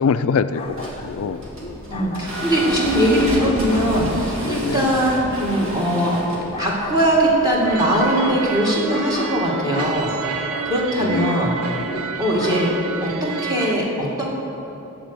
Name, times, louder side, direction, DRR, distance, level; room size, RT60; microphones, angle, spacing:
voice 1, 0.0-1.4 4.5-4.9 11.0-11.9, left 5 dB, 70° left, 11 dB, 0.4 m, -24 dB
Dogs barking, 0.5-13.1, left 2 dB, 25° left, 0.6 m, -36 dB
sound 1, 0.6-8.5, equal, 60° right, 2.2 m, -30 dB
voice 2, 1.9-6.2 6.6-10.1 10.6-11.6 12.2-12.7 13.0-14.3, right 1 dB, 15° right, -4 dB, 2.0 m, -20 dB
sound 2, 7.6-13.8, right 6 dB, 85° right, 0.7 m, -30 dB
14.5 x 5.1 x 8.1 m, 3.0 s
head